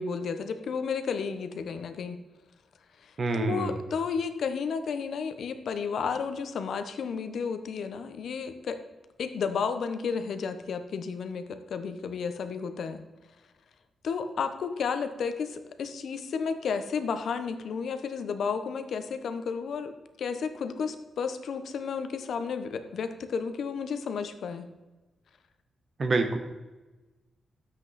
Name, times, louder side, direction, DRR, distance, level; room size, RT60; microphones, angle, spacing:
voice 1, 0.0-2.2 3.0-8.8 9.2-13.0 14.0-19.9 20.2-24.7, left 6 dB, 70° left, 9 dB, 0.9 m, -32 dB
voice 2, 3.2-3.8 26.0-26.4, right 3 dB, 40° right, 7 dB, 1.2 m, -27 dB
12.5 x 8.0 x 4.2 m, 1.2 s
wide cardioid pair, 155°, 0 cm